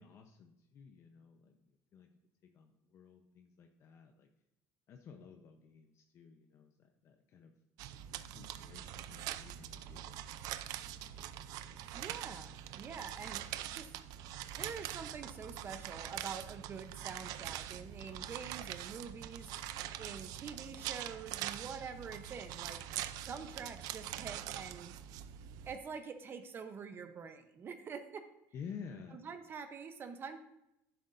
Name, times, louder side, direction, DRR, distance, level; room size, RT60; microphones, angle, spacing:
voice 1, 0.0-2.1 2.5-4.3 4.9-7.5 8.3-10.3 10.8-11.2 11.7-12.0 28.5-29.2, left 6 dB, 45° left, 4 dB, 0.8 m, -53 dB
sound 1, 7.8-25.8, right 12 dB, 70° right, 0.5 m, -44 dB
voice 2, 11.9-13.9 14.6-19.5 20.0-22.8 23.2-24.9 25.7-28.3 29.2-30.4, right 6 dB, 35° right, 8 dB, 0.8 m, -46 dB
11.0 x 10.5 x 2.6 m, 0.85 s
cardioid pair, 130°, 7 cm